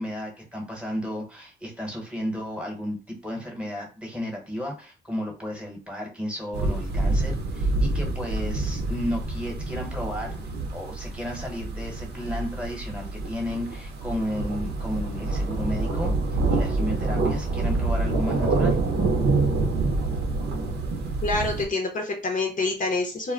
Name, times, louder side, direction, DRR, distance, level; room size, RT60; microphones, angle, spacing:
voice 1, 0.0-10.4 10.7-16.1 16.5-18.8, equal, 5° right, 0 dB, 1.0 m, -33 dB
sound 1, 6.5-21.6, right 2 dB, 60° right, 0.7 m, -26 dB
voice 2, 21.2-23.3, left 3 dB, 40° left, 2 dB, 0.7 m, -27 dB
2.1 x 2.1 x 3.6 m, 0.34 s
cardioid pair, 90°, 20 cm